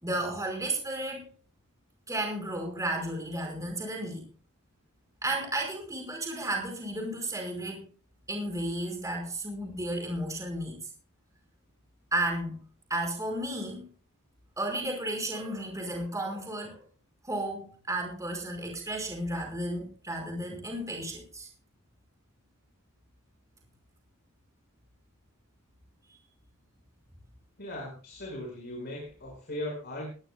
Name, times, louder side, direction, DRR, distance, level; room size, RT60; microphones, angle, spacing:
voice 1, 0.0-1.3 2.1-4.2 5.2-7.8 8.3-10.8 12.1-12.6 12.9-13.9 14.6-16.8 17.2-21.5, right 1 dB, 15° right, 2 dB, 4.9 m, -33 dB
voice 2, 27.6-30.1, left 1 dB, 50° left, -1 dB, 5.3 m, -38 dB
19.5 x 18.0 x 2.3 m, 0.38 s
head